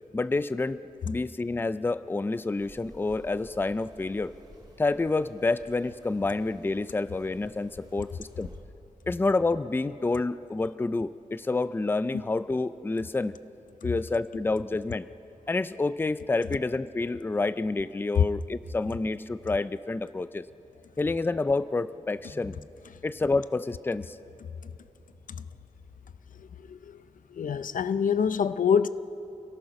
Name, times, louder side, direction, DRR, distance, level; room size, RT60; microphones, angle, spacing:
voice 1, 0.1-0.8 1.0-4.3 4.8-8.5 9.1-13.4 13.8-15.1 15.5-20.4 21.0-22.7 23.0-24.2, left 3 dB, 15° left, 0.4 m, -28 dB
sound 1, 2.6-8.6, right 1 dB, 30° right, 3.4 m, -53 dB
voice 2, 26.6-27.0 27.3-28.9, left 7 dB, 85° left, 0.6 m, -25 dB
29.5 x 18.5 x 6.0 m
wide cardioid pair, 135°, 13 cm